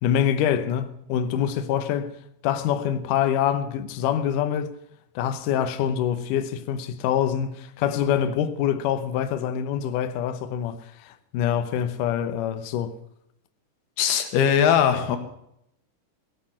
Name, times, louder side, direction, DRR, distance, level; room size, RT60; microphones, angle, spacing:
voice 1, 0.0-2.2 2.4-4.8 5.2-12.9, left 9 dB, 70° left, 2.2 m, -25 dB
voice 2, 14.0-15.2, left 8 dB, 90° left, 3.4 m, -20 dB
17.5 x 8.4 x 7.6 m
omnidirectional pair, 4.5 m